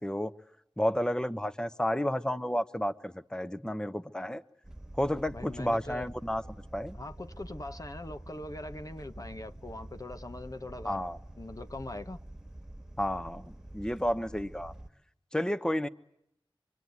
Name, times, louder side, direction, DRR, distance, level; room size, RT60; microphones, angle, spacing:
voice 1, 0.0-0.3 0.8-4.4 5.0-6.4 6.7-7.0 10.8-11.2 13.0-14.7 15.3-15.9, equal, 10° left, 1.0 m, -31 dB
sound 1, 4.6-14.9, right 1 dB, 5° right, 1.9 m, -47 dB
voice 2, 5.3-6.1 6.9-11.0 11.4-12.2, left 2 dB, 40° left, 1.2 m, -42 dB
25.5 x 24.0 x 9.6 m
cardioid pair, 40°, 9 cm